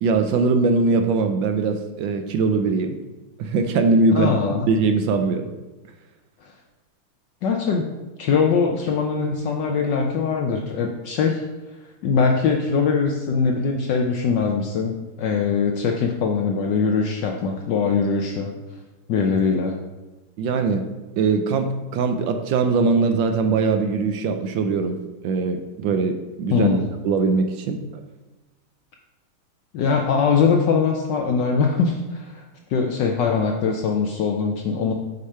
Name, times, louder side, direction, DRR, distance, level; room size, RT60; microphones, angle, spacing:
voice 1, 0.0-3.0 3.4-4.3 4.7-5.5 20.4-20.8 21.2-25.0 25.2-27.8, right 4 dB, 75° right, 6 dB, 1.3 m, -21 dB
voice 2, 4.1-4.7 6.4-6.5 7.4-7.8 8.2-11.4 12.0-18.5 19.1-19.7 26.5-26.9 29.7-32.4 32.7-34.9, left 5 dB, 70° left, 2 dB, 1.2 m, -22 dB
6.6 x 5.0 x 5.5 m, 1.1 s
omnidirectional pair, 2.2 m